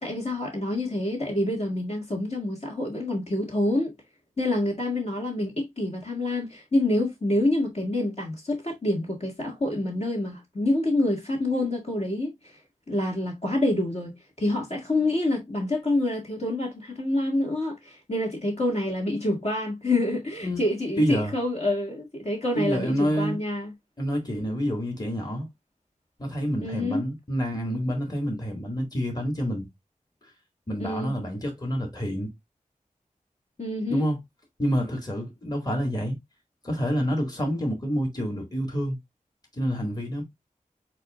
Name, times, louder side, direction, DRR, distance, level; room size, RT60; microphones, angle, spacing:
voice 1, 0.0-3.9 4.4-12.6 12.9-23.7 26.6-27.0 30.8-31.1 33.6-34.1, left 1 dB, 50° left, 1.8 m, -27 dB
voice 2, 21.0-21.3 22.6-23.4 24.0-25.5 26.2-29.7 30.7-32.3 33.9-34.2 34.6-36.2 36.6-39.0 39.6-40.2, equal, 30° left, 1.9 m, -28 dB
8.2 x 2.7 x 2.4 m
wide cardioid pair, 75°, 14 cm